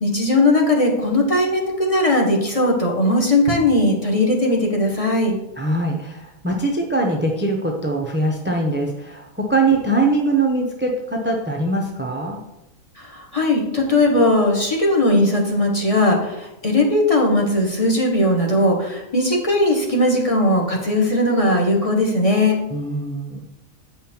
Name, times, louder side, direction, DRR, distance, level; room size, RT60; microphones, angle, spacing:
voice 1, 0.0-5.4 13.1-22.6, left 1 dB, 25° left, -1 dB, 1.3 m, -18 dB
voice 2, 5.6-12.4 22.7-23.5, right 2 dB, 10° right, 1 dB, 0.5 m, -22 dB
8.3 x 5.6 x 4.5 m, 0.93 s
omnidirectional pair, 1.6 m